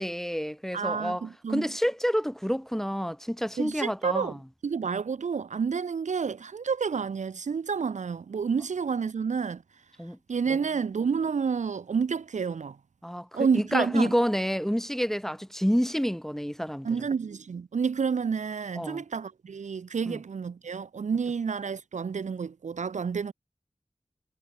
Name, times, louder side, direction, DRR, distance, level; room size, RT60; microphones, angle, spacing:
voice 1, 0.0-4.4 10.0-10.2 10.5-10.6 13.0-16.9 18.8-19.0 20.1-20.2, equal, 5° left, 0.9 m, -28 dB
voice 2, 0.7-1.7 3.6-4.3 4.6-9.6 10.3-12.8 13.3-14.1 16.8-23.3, right 6 dB, 75° right, 0.4 m, -29 dB
wide cardioid pair, 50°, 13 cm